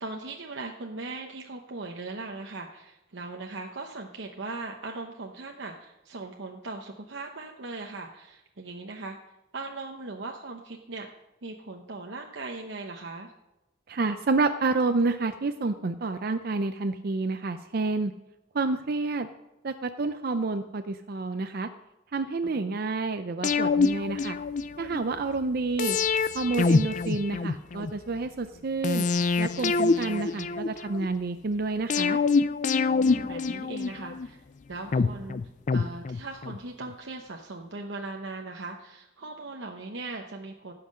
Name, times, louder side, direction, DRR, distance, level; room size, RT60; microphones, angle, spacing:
voice 1, 0.0-9.2 9.5-11.1 11.4-13.3 22.4-22.8 32.9-34.4 34.7-35.4 35.7-40.7, right 3 dB, 70° right, 2 dB, 0.9 m, -39 dB
voice 2, 13.9-18.1 18.5-19.3 19.6-21.7 22.1-24.4 24.8-26.0 26.3-29.0 29.4-32.2, right 3 dB, 50° right, 8 dB, 0.5 m, -29 dB
sound 1, 23.4-25.0 25.8-27.9 28.8-31.1 31.9-34.3 34.9-36.6 36.9-37.0, left 4 dB, 40° left, 0.4 m, -26 dB
16.0 x 5.9 x 6.4 m, 0.97 s
head